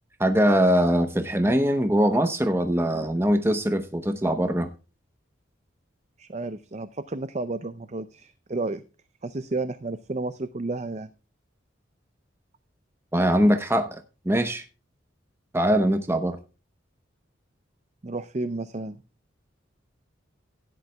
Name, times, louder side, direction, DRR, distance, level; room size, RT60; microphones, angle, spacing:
voice 1, 0.2-4.7 13.1-14.0 14.3-14.6 15.5-16.4, equal, 10° right, 7 dB, 0.8 m, -22 dB
voice 2, 6.2-8.8 9.2-11.1 18.0-19.0, right 2 dB, 35° right, 13 dB, 0.5 m, -32 dB
16.0 x 11.0 x 2.3 m, 0.32 s
head